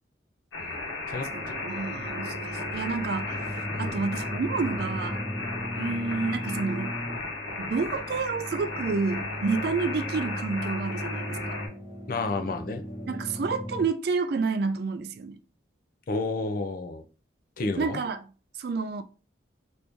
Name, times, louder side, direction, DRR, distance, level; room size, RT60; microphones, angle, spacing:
sound 1, 0.5-11.7, left 3 dB, 90° left, 1.0 m, -35 dB
voice 1, 0.6-1.3 3.7-4.1 12.1-12.8 16.1-17.0 17.6-18.0, left 3 dB, 45° left, 0.5 m, -31 dB
sound 2, 1.3-13.9, equal, 20° left, 1.0 m, -37 dB
voice 2, 1.3-3.4 3.8-5.2 5.8-7.0 7.6-11.6 13.1-15.4 17.8-18.2 18.6-19.0, right 4 dB, 55° right, 0.3 m, -29 dB
3.0 x 2.6 x 3.4 m
head